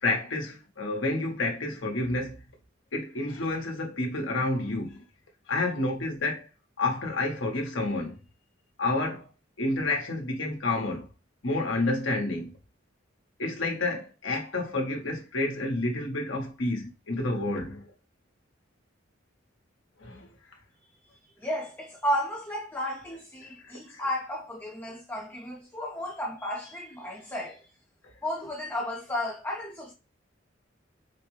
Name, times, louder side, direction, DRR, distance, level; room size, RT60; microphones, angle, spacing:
voice 1, 0.0-2.4 2.9-5.0 5.5-6.5 6.8-8.1 8.8-9.3 9.6-11.0 11.4-12.5 13.4-17.9 20.0-20.3 23.9-24.0, left 2 dB, 70° left, 1.2 m, -29 dB
voice 2, 21.4-27.6 28.2-29.9, equal, 10° left, 0.6 m, -33 dB
4.8 x 2.2 x 3.1 m
head